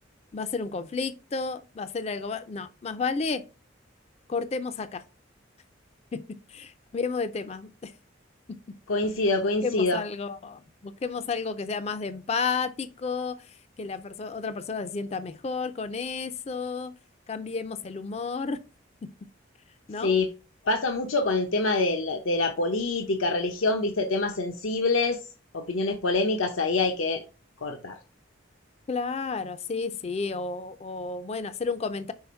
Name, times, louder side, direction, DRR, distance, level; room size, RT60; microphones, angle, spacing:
voice 1, 0.3-3.4 4.3-5.0 6.1-6.2 6.5-7.9 9.6-17.0 17.3-18.6 19.0-19.1 19.9-20.2 28.9-32.1, left 4 dB, 30° left, 0.3 m, -32 dB
voice 2, 8.9-10.0 20.0-20.3 20.6-25.2 25.5-27.2 27.6-28.0, left 3 dB, 90° left, 0.7 m, -25 dB
5.6 x 4.1 x 4.3 m
head